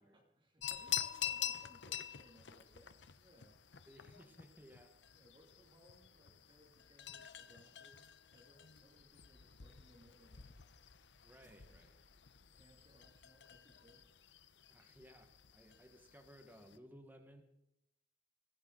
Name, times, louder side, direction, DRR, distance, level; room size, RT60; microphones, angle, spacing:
voice 1, 0.0-3.6 5.1-8.1 8.3-10.6 11.4-11.8 12.5-14.1, equal, 30° right, -1 dB, 2.7 m, -66 dB
sound 1, 0.6-16.8, left 11 dB, 75° left, 0.9 m, -47 dB
voice 2, 3.9-5.0 11.2-12.0 14.7-17.4, equal, 10° right, 4 dB, 1.7 m, -60 dB
20.5 x 16.0 x 4.0 m, 0.81 s
head